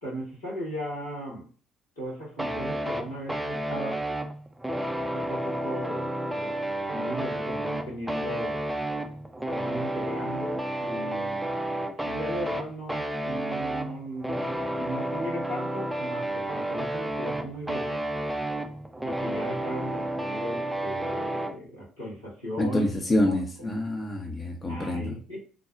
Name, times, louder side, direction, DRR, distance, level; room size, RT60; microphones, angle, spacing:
voice 1, 0.0-1.5 2.0-4.0 5.1-6.6 6.9-8.6 9.5-11.4 12.0-18.0 19.0-22.9 23.3-23.7 24.7-25.4, equal, 80° left, 1.9 m, -37 dB
sound 1, 2.4-21.6, right 1 dB, 5° right, 0.5 m, -31 dB
voice 2, 22.6-25.1, left 1 dB, 30° left, 0.8 m, -27 dB
3.7 x 2.3 x 4.4 m
figure-of-eight pair, 45°, 0 cm